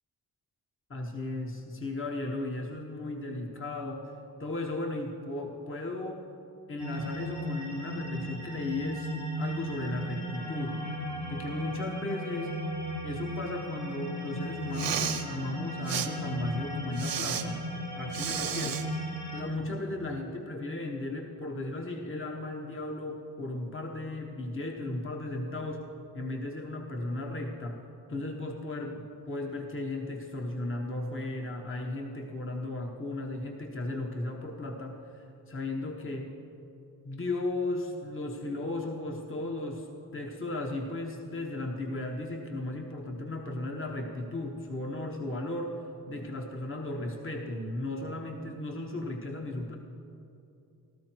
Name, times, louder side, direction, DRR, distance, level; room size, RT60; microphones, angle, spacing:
voice 1, 0.9-4.1 4.4-6.2 6.7-10.8 11.3-12.5 13.0-17.6 17.9-18.8 19.3-25.9 26.1-36.3 37.0-39.9 40.1-45.8 46.1-49.7, left 2 dB, 30° left, 2 dB, 1.1 m, -35 dB
sound 1, 6.8-19.4, equal, 70° left, 3.1 m, -36 dB
Respiratory sounds, 14.6-15.2 15.9-16.1 17.0-17.4 18.1-18.8, right 8 dB, 85° right, 1.0 m, -32 dB
14.5 x 13.0 x 4.6 m, 2.7 s
cardioid pair, 80°, 41 cm